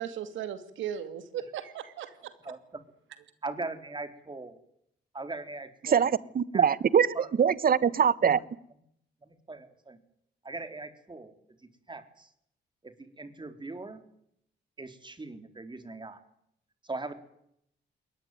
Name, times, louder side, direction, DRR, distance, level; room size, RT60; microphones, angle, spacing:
voice 1, 0.0-2.3, right 9 dB, 90° right, 11 dB, 2.5 m, -37 dB
voice 2, 2.4-2.8 3.4-4.6 5.1-6.0 6.5-6.6 7.1-7.3 7.7-8.0 9.2-10.0 10.4-11.3 11.9-12.3 12.8-14.0 14.8-16.2 16.8-17.1, right 3 dB, 25° right, 9 dB, 4.0 m, -40 dB
voice 3, 5.8-8.4, right 7 dB, 50° right, 19 dB, 1.2 m, -23 dB
22.0 x 19.5 x 9.3 m, 0.73 s
cardioid pair, 75°, 19 cm